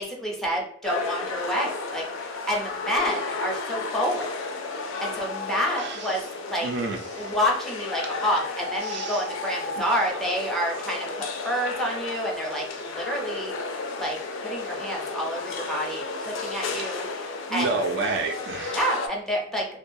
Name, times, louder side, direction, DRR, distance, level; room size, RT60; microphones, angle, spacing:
voice 1, 0.0-4.3 5.0-6.7 7.2-13.6 14.0-17.7 18.7-19.7, equal, ahead, -2 dB, 0.5 m, -29 dB
sound 1, 0.8-19.1, left 3 dB, 65° left, 0.4 m, -33 dB
voice 2, 5.8-6.1 6.6-7.2 8.8-9.3 9.7-9.8 17.5-18.8, right 3 dB, 55° right, 4 dB, 0.4 m, -29 dB
2.2 x 2.2 x 2.6 m, 0.72 s
head